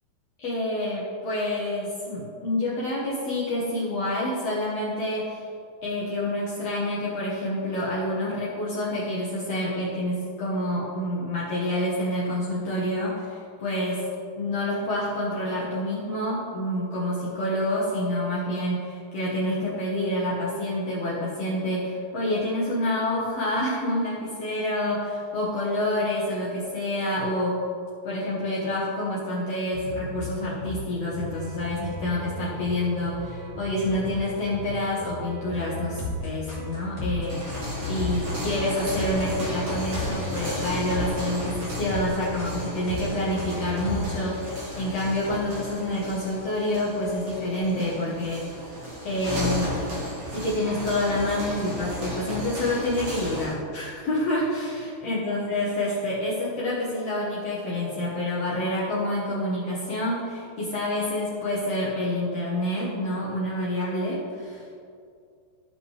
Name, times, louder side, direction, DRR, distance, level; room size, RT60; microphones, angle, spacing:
voice 1, 0.4-5.4 5.8-14.0 14.4-27.6 28.0-37.5 37.8-48.6 49.0-49.7 50.3-64.6, left 1 dB, 80° left, -7 dB, 1.4 m, -28 dB
sound 1, 29.7-44.0, left 1 dB, 25° left, 1.4 m, -35 dB
sound 2, 37.2-53.6, left 1 dB, 50° right, 2.0 m, -34 dB
14.5 x 5.4 x 3.2 m, 2.3 s
omnidirectional pair, 4.7 m